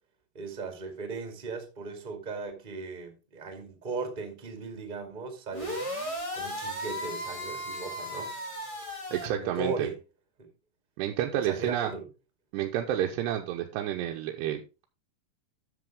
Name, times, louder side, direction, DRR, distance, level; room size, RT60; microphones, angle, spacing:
voice 1, 0.3-5.8 6.3-8.3 9.3-9.9 10.4-10.5 11.3-12.1, right 4 dB, 20° right, 1.2 m, -37 dB
sound 1, 5.5-9.3, equal, 25° left, 0.6 m, -36 dB
voice 2, 9.1-9.9 11.0-11.9 12.5-14.9, right 11 dB, 85° right, 3.0 m, -30 dB
11.0 x 7.0 x 3.6 m
omnidirectional pair, 4.7 m